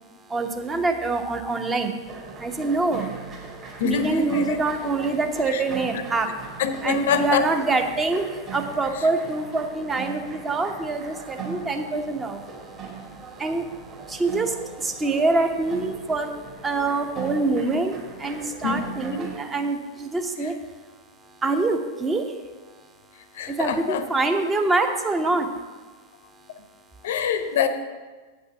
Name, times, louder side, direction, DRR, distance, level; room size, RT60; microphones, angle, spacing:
voice 1, 0.3-1.9 2.4-3.1 3.8-6.3 6.8-12.4 13.4-13.7 14.1-16.3 16.6-20.5 21.4-22.3 23.5-25.5, right 3 dB, 15° right, 5 dB, 0.9 m, -25 dB
sound 1, 2.0-19.4, right 5 dB, 35° right, 2.4 m, -39 dB
voice 2, 3.8-4.6 5.5-5.6 6.6-7.4 18.6-18.8 19.1-19.2 23.4-24.0 27.0-27.7, left 7 dB, 55° left, 10 dB, 0.7 m, -24 dB
8.2 x 5.4 x 6.8 m, 1.3 s
figure-of-eight pair, 90°, 0 cm